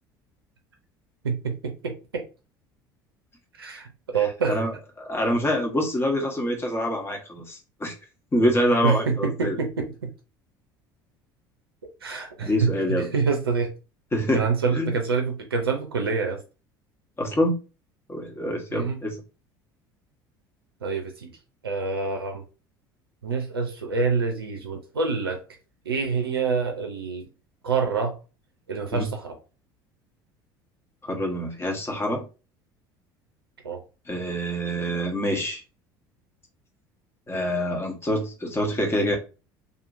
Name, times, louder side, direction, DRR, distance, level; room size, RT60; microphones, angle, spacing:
voice 1, 1.2-2.3 3.6-4.6 8.8-10.1 12.0-13.7 14.3-16.4 18.7-19.0 20.8-21.4 21.6-22.4 23.2-25.4 25.8-27.3 27.6-28.2 28.7-29.4 33.6-33.8, right 5 dB, 90° right, 0.5 m, -26 dB
voice 2, 5.0-7.9 8.3-9.6 12.4-13.1 14.1-14.5 14.7-15.0 17.2-17.5 18.1-19.2 28.9-29.1 31.0-32.2 34.1-35.6 37.3-39.2, equal, 20° left, 1.1 m, -25 dB
2.8 x 2.5 x 2.5 m
hypercardioid pair, 65°, 12 cm